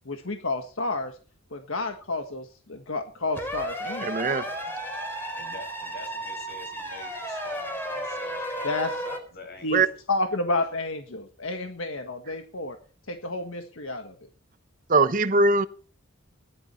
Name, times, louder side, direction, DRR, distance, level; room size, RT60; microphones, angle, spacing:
voice 1, 0.1-1.2 1.5-4.2 8.6-8.9 9.6-9.8 10.1-12.8 13.1-14.1, left 2 dB, 70° left, 1.6 m, -30 dB
sound 1, 3.3-9.2, right 1 dB, 10° left, 4.3 m, -33 dB
voice 2, 4.0-4.4 9.7-9.9 14.9-15.7, right 3 dB, 40° right, 0.9 m, -21 dB
voice 3, 5.3-10.0, left 3 dB, 55° left, 7.3 m, -45 dB
18.0 x 12.0 x 4.4 m
head